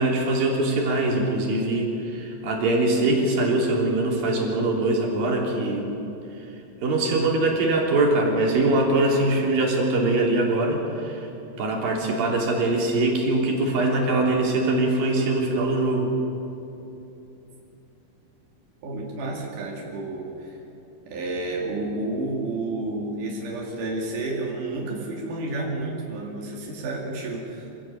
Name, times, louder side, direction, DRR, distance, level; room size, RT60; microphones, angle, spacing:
voice 1, 0.0-5.9 6.8-11.3 11.6-16.1, right 2 dB, 80° right, -1 dB, 5.0 m, -22 dB
voice 2, 18.8-20.6 21.1-27.7, right 2 dB, 65° right, -2 dB, 4.0 m, -30 dB
26.5 x 17.0 x 8.5 m, 2.9 s
omnidirectional pair, 4.0 m